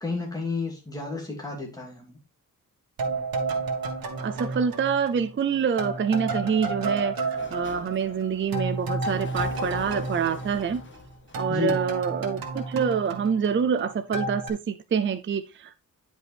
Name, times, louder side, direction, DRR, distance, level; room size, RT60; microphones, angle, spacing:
voice 1, 0.0-2.2 11.5-11.8, left 4 dB, 10° left, 2.5 m, -31 dB
sound 1, 3.0-5.4 5.8-11.0 11.3-13.8 14.1-14.5, right 3 dB, 90° right, 1.6 m, -31 dB
voice 2, 4.2-10.8 11.4-15.8, right 6 dB, 35° right, 0.6 m, -26 dB
Sliding door, 7.2-12.8, left 3 dB, 35° left, 1.3 m, -45 dB
9.8 x 5.2 x 3.4 m
wide cardioid pair, 145°, 34 cm